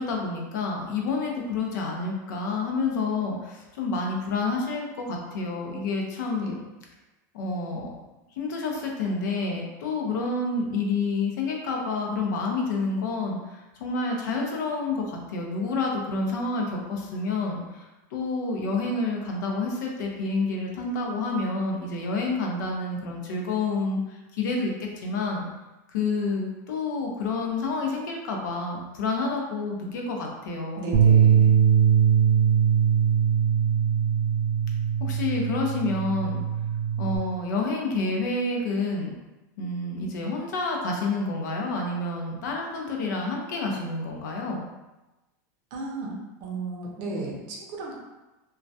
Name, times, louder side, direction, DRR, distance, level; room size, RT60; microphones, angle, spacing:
voice 1, 0.0-6.5 7.3-7.9 8.4-17.9 18.1-25.5 25.9-30.8 35.0-36.4 37.0-39.1 39.6-44.7, left 3 dB, 85° left, 0 dB, 0.6 m, -29 dB
voice 2, 30.8-31.5 45.7-47.9, right 3 dB, 45° right, -1 dB, 0.6 m, -35 dB
Bass guitar, 30.9-37.2, right 8 dB, 90° right, 0.4 m, -21 dB
2.2 x 2.1 x 2.6 m, 1.1 s
supercardioid pair, 160°, 10 cm